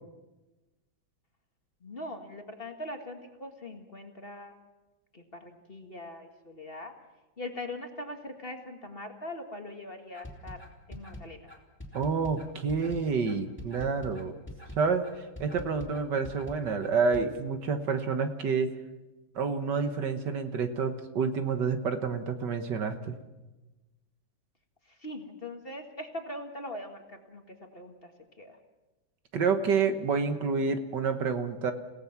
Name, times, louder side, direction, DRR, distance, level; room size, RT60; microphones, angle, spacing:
voice 1, 1.8-4.5 5.1-6.9 7.4-10.6 10.9-11.4 24.9-28.1 28.4-28.6, left 1 dB, 30° left, 4 dB, 1.9 m, -41 dB
sound 1, 10.1-17.2, left 1 dB, 5° left, 3.4 m, -44 dB
voice 2, 11.9-14.4 14.8-15.0 15.4-18.7 19.4-23.2 29.3-31.7, right 5 dB, 65° right, 7 dB, 1.9 m, -28 dB
29.5 x 17.5 x 6.0 m, 1.1 s
omnidirectional pair, 2.1 m